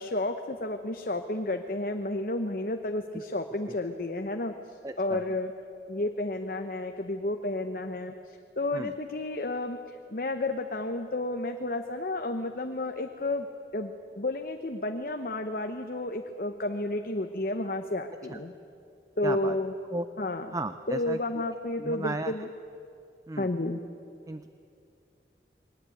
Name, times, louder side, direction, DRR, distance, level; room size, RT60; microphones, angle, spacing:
voice 1, 0.0-5.5 5.9-13.5 13.7-18.5 19.2-19.7 20.2-20.5 20.9-22.5 23.4-23.8, left 2 dB, 50° left, 6 dB, 0.9 m, -31 dB
voice 2, 4.8-5.3 8.7-8.9 18.3-18.4 19.2-19.6 19.9-20.1 20.5-21.2 21.8-22.3 23.3-23.5 24.3-24.5, right 2 dB, 20° right, 11 dB, 0.5 m, -35 dB
22.0 x 19.0 x 8.6 m, 2.5 s
head